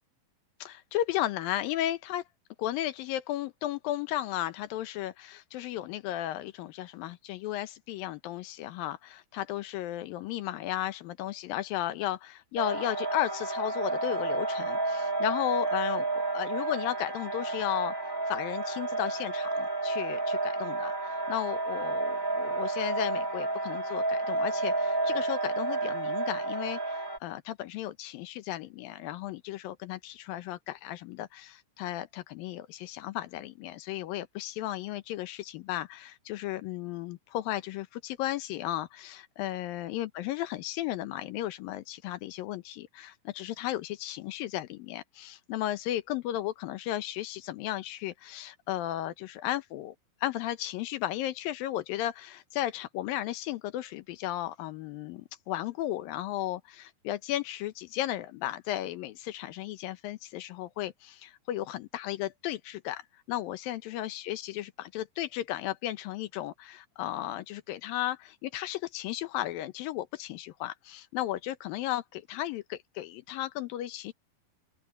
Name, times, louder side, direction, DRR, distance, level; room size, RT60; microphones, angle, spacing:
voice 1, 0.6-2.2 2.6-17.9 18.3-50.0 50.2-74.1, left 13 dB, 80° left, 2.7 m, -34 dB
sound 1, 12.6-27.2, right 2 dB, 10° right, 1.5 m, -31 dB
open air
omnidirectional pair, 4.1 m